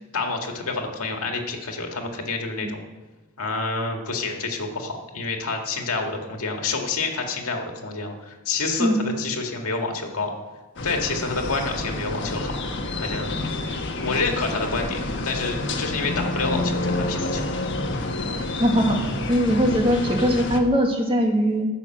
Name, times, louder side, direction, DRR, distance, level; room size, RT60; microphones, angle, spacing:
voice 1, 0.0-2.8 3.4-10.3 10.8-12.5 13.0-13.5 14.0-17.4, left 3 dB, 80° left, 3 dB, 1.9 m, -28 dB
sound 1, 10.8-20.6, left 2 dB, 55° left, 1.3 m, -28 dB
voice 2, 18.6-19.0 19.3-21.7, equal, 25° right, 2 dB, 1.6 m, -20 dB
14.0 x 6.6 x 7.7 m, 1.2 s
head